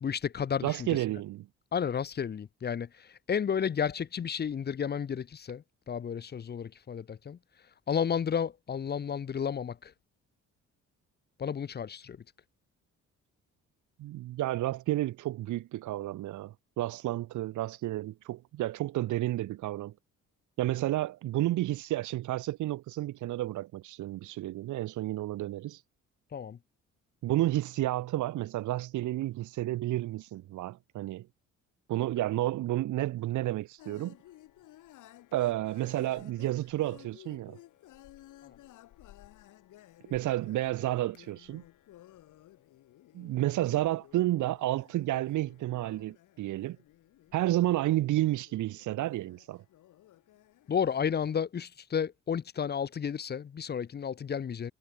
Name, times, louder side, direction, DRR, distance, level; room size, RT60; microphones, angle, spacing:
voice 1, 0.0-1.0 1.7-7.4 7.9-9.9 11.4-12.2 26.3-26.6 50.7-54.7, left 7 dB, 35° left, 0.6 m, -32 dB
voice 2, 0.6-1.5 14.0-19.9 20.6-25.8 27.2-31.3 31.9-34.1 35.3-37.6 40.1-41.6 43.1-46.8 47.3-49.6, right 15 dB, 75° right, 1.0 m, -31 dB
sound 1, 33.8-51.4, left 14 dB, 85° left, 5.3 m, -56 dB
cardioid pair, 90°, 30 cm